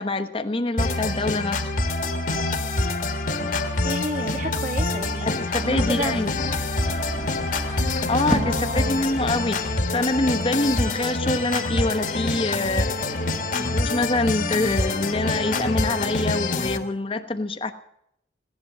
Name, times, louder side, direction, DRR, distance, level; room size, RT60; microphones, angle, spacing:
voice 1, 0.0-1.7 5.2-6.3 8.1-13.2 13.5-17.7, left 2 dB, 30° left, 7 dB, 1.0 m, -25 dB
sound 1, 0.8-16.8, left 2 dB, 45° left, 1.5 m, -26 dB
voice 2, 3.8-5.3 5.6-6.3 8.3-9.0, right 1 dB, 45° right, 3 dB, 1.9 m, -31 dB
sound 2, 5.7-10.8, equal, 5° right, 1.1 m, -35 dB
17.0 x 11.0 x 7.7 m, 0.77 s
head